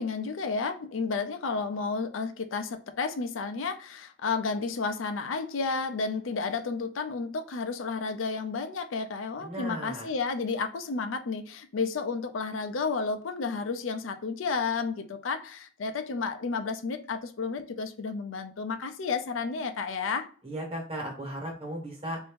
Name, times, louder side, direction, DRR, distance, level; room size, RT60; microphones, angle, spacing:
voice 1, 0.0-20.3, left 4 dB, 85° left, 0.5 m, -32 dB
voice 2, 9.4-10.1 20.4-22.2, right 1 dB, 30° right, 1.3 m, -36 dB
2.7 x 2.6 x 3.5 m
head